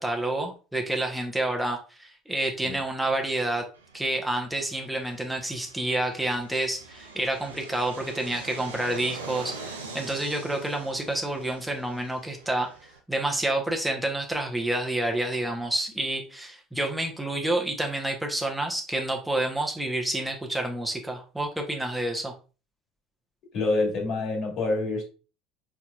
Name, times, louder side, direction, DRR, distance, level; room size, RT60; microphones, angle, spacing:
voice 1, 0.0-3.6 3.9-22.3, right 1 dB, 5° right, 1.1 m, -29 dB
Fixed-wing aircraft airplane, 3.7-13.0, right 4 dB, 85° right, 0.7 m, -43 dB
voice 2, 23.5-25.0, left 2 dB, 50° left, 2.3 m, -26 dB
4.7 x 4.1 x 2.5 m
figure-of-eight pair, 65°, 0 cm